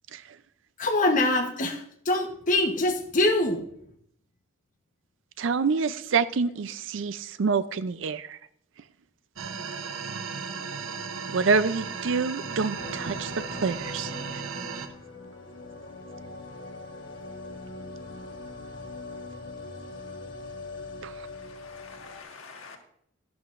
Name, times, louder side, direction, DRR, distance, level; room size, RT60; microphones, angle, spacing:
voice 1, 0.8-3.6, left 2 dB, 40° left, 4 dB, 1.0 m, -24 dB
voice 2, 5.4-8.4 11.3-13.3 13.6-14.1 21.0-21.1, right 5 dB, 65° right, 14 dB, 0.5 m, -26 dB
sound 1, 9.4-14.9, right 5 dB, 85° right, 0.8 m, -35 dB
sound 2, 12.7-22.2, left 3 dB, 65° left, 1.2 m, -42 dB
voice 3, 21.4-22.8, left 4 dB, 90° left, 3 dB, 1.5 m, -46 dB
11.5 x 11.0 x 2.5 m, 0.68 s
head